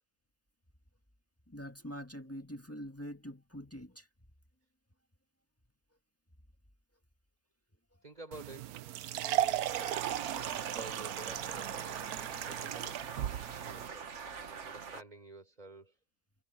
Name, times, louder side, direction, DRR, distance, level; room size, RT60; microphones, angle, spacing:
voice 1, 1.5-4.1, equal, 10° left, 1.6 m, -44 dB
voice 2, 8.0-9.7 10.4-11.8 12.4-14.1 14.6-15.9, right 2 dB, 25° right, 4.3 m, -51 dB
sound 1, 8.3-13.9, right 11 dB, 80° right, 1.2 m, -36 dB
sound 2, 9.7-15.0, right 6 dB, 55° right, 1.6 m, -43 dB
omnidirectional pair, 1.6 m